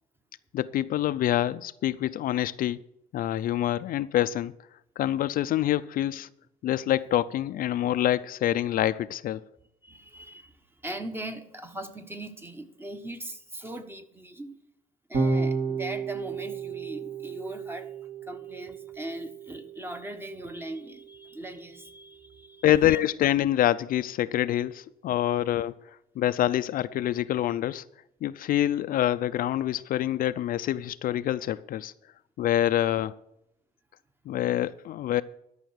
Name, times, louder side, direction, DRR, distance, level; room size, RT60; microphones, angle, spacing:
voice 1, 0.5-2.8 3.1-4.5 5.0-6.3 6.6-9.4 22.6-25.8 26.2-27.8 28.2-31.9 32.4-33.1 34.3-35.2, left 12 dB, 60° left, 0.4 m, -26 dB
voice 2, 9.8-14.6 15.1-17.9 18.2-23.0, right 1 dB, 15° right, 1.2 m, -40 dB
Electric guitar / Bass guitar, 15.1-21.5, right 4 dB, 50° right, 3.2 m, -33 dB
13.0 x 5.6 x 8.0 m
cardioid pair, 110°, 17 cm